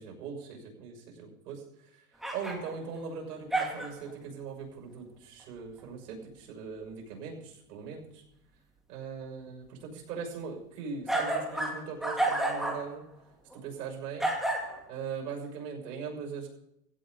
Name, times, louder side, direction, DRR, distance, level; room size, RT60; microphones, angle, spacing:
voice 1, 0.0-2.1 2.3-8.2 8.9-13.0 13.5-14.3 14.9-16.5, right 5 dB, 70° right, 1 dB, 6.7 m, -40 dB
sound 1, 2.2-3.0 3.5-4.1 11.1-12.9 13.5-13.6 14.2-14.8, right 2 dB, ahead, 2.0 m, -30 dB
18.0 x 16.5 x 4.1 m, 0.80 s
supercardioid pair, 155°, 49 cm